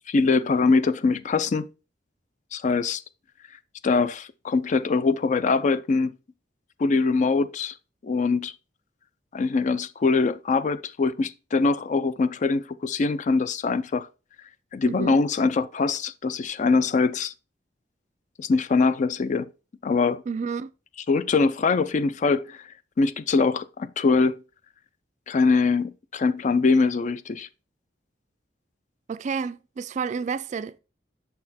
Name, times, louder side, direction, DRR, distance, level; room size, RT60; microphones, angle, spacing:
voice 1, 0.1-1.7 2.5-3.0 3.8-6.1 6.8-7.7 8.0-8.5 9.3-14.1 14.7-17.3 18.4-19.5 19.8-20.2 21.1-22.6 23.0-24.4 25.3-27.5, left 4 dB, 45° left, 0.4 m, -23 dB
voice 2, 14.9-15.2 20.3-20.7 29.1-30.8, right 5 dB, 40° right, 0.3 m, -30 dB
6.5 x 4.3 x 4.1 m
head